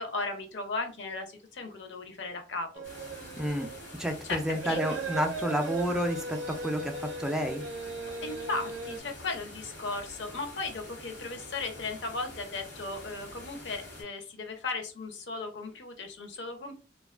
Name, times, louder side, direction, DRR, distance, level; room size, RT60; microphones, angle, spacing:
voice 1, 0.0-2.8 4.2-5.0 8.1-16.8, left 3 dB, 65° left, 5 dB, 0.6 m, -36 dB
sound 1, 2.7-9.0, right 3 dB, 90° right, 0.4 m, -38 dB
sound 2, 2.8-14.0, left 1 dB, 80° left, 1.1 m, -47 dB
voice 2, 3.4-3.7 4.0-7.6, equal, 5° right, 4 dB, 0.3 m, -30 dB
2.4 x 2.2 x 2.3 m, 0.36 s
head